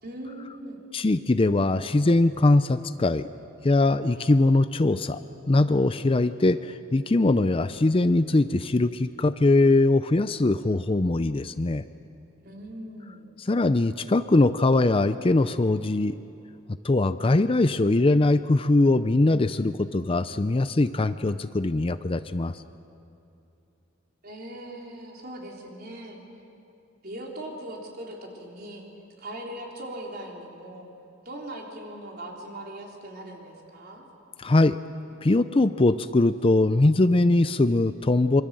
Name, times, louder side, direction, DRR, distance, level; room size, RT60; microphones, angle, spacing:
voice 1, 0.0-0.8 12.4-13.3 24.2-26.2 27.0-28.8 29.2-30.9 31.2-34.0, right 1 dB, 50° right, -1 dB, 4.1 m, -40 dB
voice 2, 0.9-3.2 3.6-11.8 13.4-16.2 16.8-22.6 34.4-34.8 35.2-38.4, left 2 dB, 25° left, 12 dB, 0.5 m, -21 dB
26.0 x 25.0 x 7.7 m, 2.7 s
head